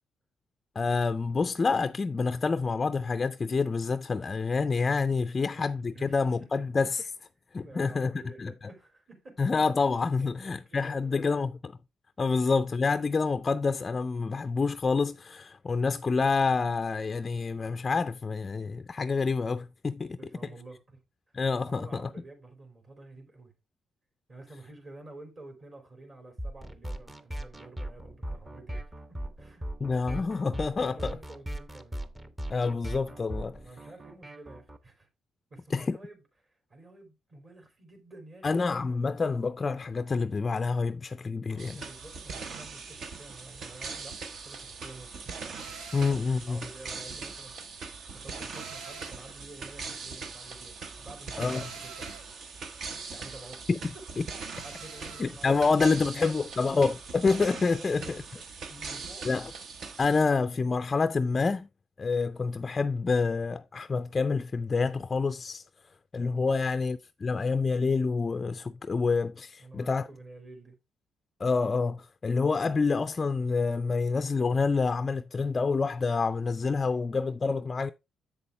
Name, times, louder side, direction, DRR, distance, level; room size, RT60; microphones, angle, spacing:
voice 1, 0.8-7.0 7.5-8.5 9.4-11.5 12.2-20.2 21.3-22.1 29.8-31.1 32.5-33.6 35.7-36.0 38.4-41.8 45.9-46.6 51.4-51.6 53.7-53.8 54.2-54.3 55.2-58.2 59.2-59.5 60.0-61.7 62.0-65.6 66.1-70.1 71.4-77.9, left 4 dB, 30° left, 0.3 m, -27 dB
voice 2, 5.4-6.2 6.9-7.1 7.6-9.4 10.2-11.4 20.2-21.0 21.6-23.5 24.3-28.9 29.4-29.7 30.8-32.0 33.6-35.1 35.5-38.5 41.5-45.3 45.7-46.1 46.5-52.1 52.5-52.7 53.1-53.6 54.6-55.7 56.0-56.3 57.8-58.2 58.7-59.3 66.5-66.7 69.6-70.7, right 2 dB, 40° right, 3.1 m, -50 dB
sound 1, 26.4-34.8, right 1 dB, 15° right, 0.8 m, -39 dB
sound 2, 41.6-60.2, right 4 dB, 60° right, 1.1 m, -41 dB
sound 3, 45.6-46.3 48.5-49.3 51.5-52.3 54.5-55.3, right 5 dB, 80° right, 1.3 m, -45 dB
7.5 x 6.7 x 3.2 m
cardioid pair, 90°, 0 cm